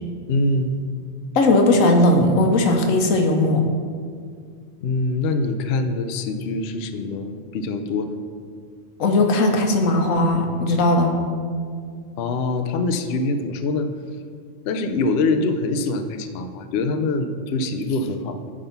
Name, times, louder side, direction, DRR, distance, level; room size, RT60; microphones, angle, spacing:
voice 1, 0.3-0.8 4.8-8.2 12.2-13.9 14.6-18.4, left 2 dB, 60° left, 7 dB, 0.7 m, -24 dB
voice 2, 1.3-3.6 9.0-11.2, left 2 dB, 90° left, 3 dB, 1.2 m, -18 dB
9.5 x 3.7 x 5.7 m, 2.1 s
omnidirectional pair, 1.3 m